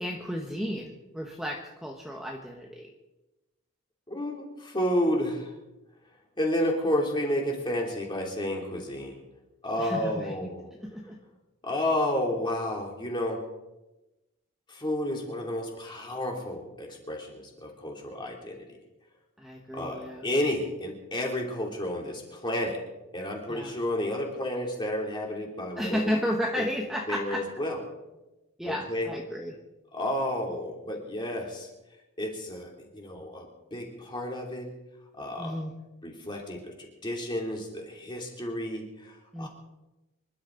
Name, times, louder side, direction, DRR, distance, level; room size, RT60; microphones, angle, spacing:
voice 1, 0.0-2.9 9.8-10.5 10.8-11.2 19.4-20.3 23.5-23.7 25.8-27.6 28.6-29.6 35.4-35.7 39.3-39.5, equal, ahead, 0 dB, 1.2 m, -33 dB
voice 2, 4.1-5.5 6.4-9.2 9.6-10.7 11.6-13.4 14.7-18.6 19.7-22.8 23.1-26.1 26.6-26.7 27.1-27.8 28.6-29.1 29.9-31.7 32.2-34.7 35.2-35.5 36.0-39.5, left 1 dB, 20° left, 0 dB, 3.0 m, -31 dB
26.0 x 12.0 x 3.9 m, 1.0 s
head